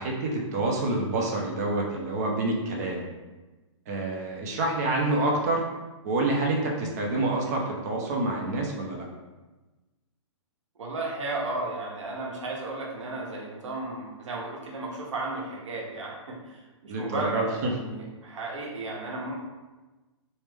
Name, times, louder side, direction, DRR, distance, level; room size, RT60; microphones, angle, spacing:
voice 1, 0.0-3.0 3.9-5.6 6.0-9.1 16.9-17.7, right 2 dB, 30° right, -1 dB, 0.5 m, -27 dB
voice 2, 10.8-19.3, right 2 dB, 75° right, -2 dB, 0.9 m, -34 dB
3.2 x 2.1 x 3.2 m, 1.2 s
hypercardioid pair, 160°, 16 cm